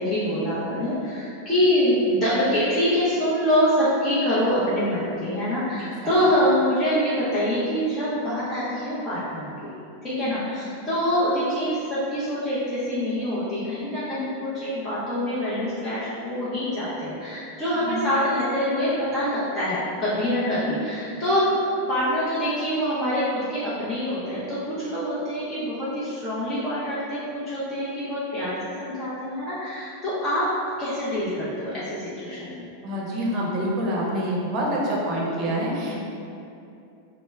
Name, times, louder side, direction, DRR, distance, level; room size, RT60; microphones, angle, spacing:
voice 1, 0.0-9.7 10.0-30.5 30.8-32.7 35.8-36.0, equal, 25° left, -11 dB, 0.7 m, -25 dB
voice 2, 10.2-10.5 17.7-18.0 20.3-20.7 32.8-36.0, equal, 35° right, -4 dB, 0.6 m, -27 dB
3.0 x 2.0 x 3.3 m, 2.6 s
figure-of-eight pair, 90°, 0 cm